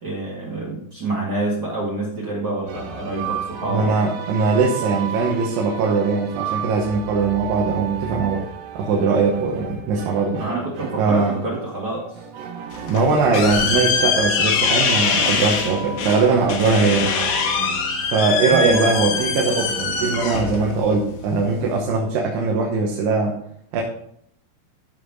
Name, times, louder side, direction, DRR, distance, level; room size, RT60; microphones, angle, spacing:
voice 1, 0.0-4.0 10.4-12.2 18.5-18.9, right 2 dB, 40° right, -4 dB, 1.5 m, -27 dB
sound 1, 2.7-20.7, right 7 dB, 70° right, 2.5 m, -34 dB
voice 2, 3.6-8.4 8.8-10.4 11.0-11.3 12.9-17.1 18.0-23.4 23.7-23.8, right 4 dB, 85° right, 0 dB, 3.2 m, -20 dB
sound 2, 12.7-21.8, left 5 dB, 65° left, 2.1 m, -23 dB
13.5 x 5.4 x 4.0 m, 0.69 s
omnidirectional pair, 4.6 m